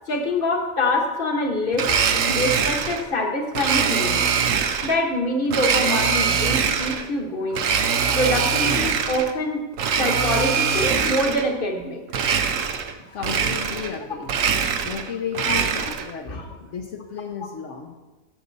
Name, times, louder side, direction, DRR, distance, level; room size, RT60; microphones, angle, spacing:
voice 1, 0.1-4.2 4.8-7.6 8.1-9.6 10.0-12.0 15.5-15.6 16.3-16.4, left 1 dB, 45° left, 2 dB, 1.6 m, -25 dB
Domestic sounds home sounds, 1.7-3.1 3.6-5.0 5.5-7.1 7.5-9.3 9.7-11.5 12.1-12.9 13.2-14.0 14.2-16.1, right 6 dB, 90° right, 1.2 m, -23 dB
voice 2, 13.0-14.3 14.8-17.9, left 7 dB, 75° left, 1 dB, 1.2 m, -33 dB
16.0 x 6.7 x 4.1 m, 1.1 s
omnidirectional pair, 1.3 m